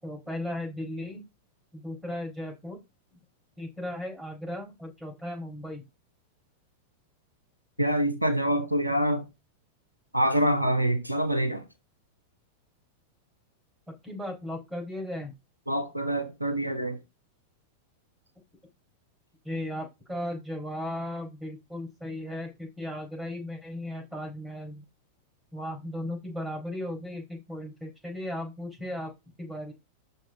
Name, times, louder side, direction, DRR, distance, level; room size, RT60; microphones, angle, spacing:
voice 1, 0.0-1.2 1.7-2.8 3.6-5.8 13.9-15.3 19.4-24.8 25.5-29.1 29.4-29.7, left 1 dB, 5° right, 4.2 m, -36 dB
voice 2, 7.8-9.3 10.1-11.6 15.7-17.0, equal, 90° right, 0.8 m, -26 dB
6.0 x 5.4 x 4.9 m
figure-of-eight pair, 90°, 0 cm